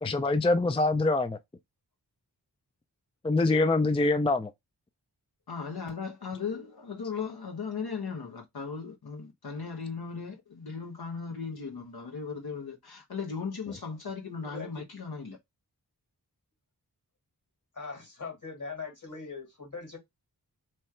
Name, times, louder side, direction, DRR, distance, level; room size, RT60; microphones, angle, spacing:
voice 1, 0.0-1.4 3.2-4.5, left 2 dB, 15° left, 0.4 m, -24 dB
voice 2, 5.5-15.4, left 5 dB, 70° left, 0.9 m, -37 dB
voice 3, 14.5-14.8 17.8-20.0, left 4 dB, 50° left, 1.9 m, -41 dB
3.1 x 2.4 x 4.3 m
wide cardioid pair, 45°, 40 cm